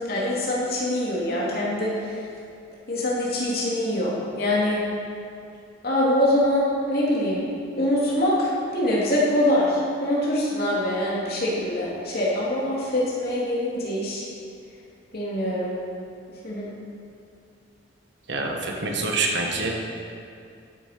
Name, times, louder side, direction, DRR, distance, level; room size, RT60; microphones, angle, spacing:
voice 1, 0.0-2.2 2.9-4.8 5.8-7.4 7.7-14.3 15.1-15.7 16.4-16.7, left 1 dB, 55° left, -6 dB, 2.8 m, -24 dB
voice 2, 18.3-19.7, right 3 dB, 60° right, 1 dB, 1.5 m, -26 dB
12.5 x 7.3 x 5.2 m, 2.4 s
head